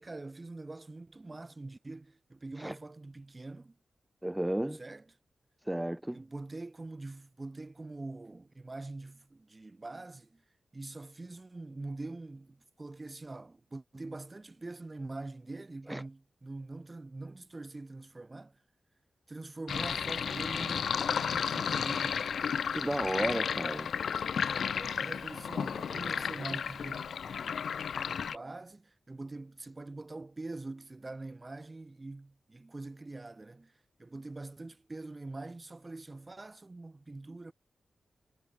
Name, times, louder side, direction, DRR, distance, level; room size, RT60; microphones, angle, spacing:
voice 1, 0.0-3.7 4.8-5.0 6.1-10.4 10.7-18.5 19.3-22.3 24.7-27.6 28.1-33.7 34.0-37.5, right 2 dB, 30° right, 1.5 m, -44 dB
voice 2, 4.2-4.8 5.6-6.2 15.9-16.0 22.7-23.9, right 1 dB, 10° right, 0.7 m, -33 dB
Sink (filling or washing), 19.7-28.4, left 7 dB, 85° left, 0.3 m, -33 dB
cardioid pair, 75°, 0 cm